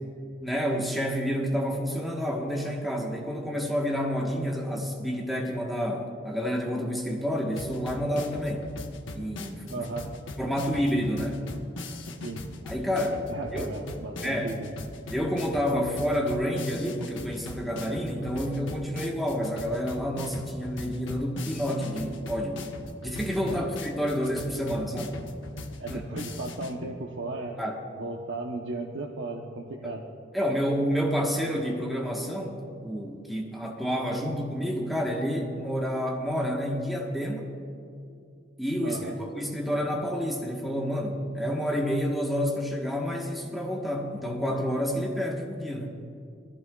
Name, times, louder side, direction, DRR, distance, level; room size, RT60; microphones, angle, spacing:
voice 1, 0.4-8.7 9.1-9.8 10.4-11.5 12.6-13.2 13.5-13.8 14.2-14.5 15.1-22.7 23.0-25.2 25.9-26.0 27.6-27.8 29.8-29.9 30.3-37.5 38.6-45.9, equal, ahead, -2 dB, 1.3 m, -29 dB
sound 1, 7.6-26.7, left 2 dB, 80° left, 1.0 m, -40 dB
voice 2, 9.7-10.1 12.2-12.5 13.3-14.7 23.5-23.6 25.8-27.6 28.0-30.0 38.8-39.2, right 2 dB, 75° right, 0 dB, 0.9 m, -35 dB
20.5 x 15.0 x 2.3 m, 2.5 s
head